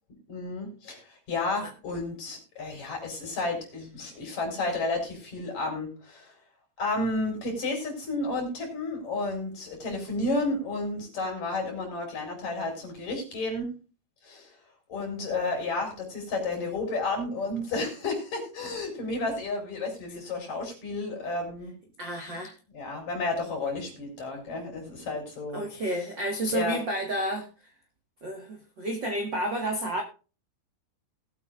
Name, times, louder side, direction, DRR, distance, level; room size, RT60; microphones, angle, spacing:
voice 1, 0.3-1.0 1.3-6.3 6.8-13.7 14.2-14.5 14.9-21.8 22.7-25.6 26.5-26.8, left 2 dB, 45° left, 6.0 m, -31 dB
voice 2, 22.0-22.5 25.5-27.7 28.2-30.0, right 1 dB, 45° right, 1.5 m, -31 dB
20.0 x 8.4 x 2.5 m
omnidirectional pair, 4.6 m